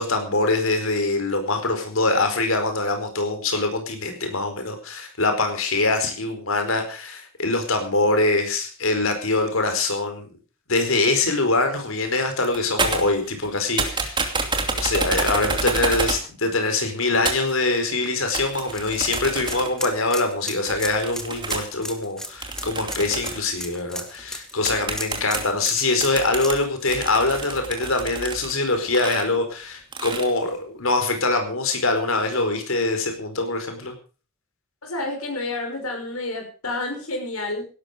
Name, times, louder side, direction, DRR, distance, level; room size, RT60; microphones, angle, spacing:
voice 1, 0.0-10.3 10.7-14.3 14.7-33.9, left 2 dB, 75° left, 6 dB, 4.6 m, -23 dB
sound 1, 12.1-12.2 12.4-13.5 13.8-16.3 17.3-17.5 18.3-19.8 20.7-21.7 22.4-23.5 24.2-24.3 24.7-25.6 26.0-28.5 28.9-29.2 29.9-30.3, right 3 dB, 20° right, 2.6 m, -28 dB
sound 2, 17.7-28.5 28.8-28.9 30.4-30.5, left 1 dB, 5° left, 1.7 m, -36 dB
voice 2, 34.8-37.7, left 2 dB, 90° left, 3 dB, 5.9 m, -29 dB
17.0 x 13.0 x 5.2 m, 0.36 s
head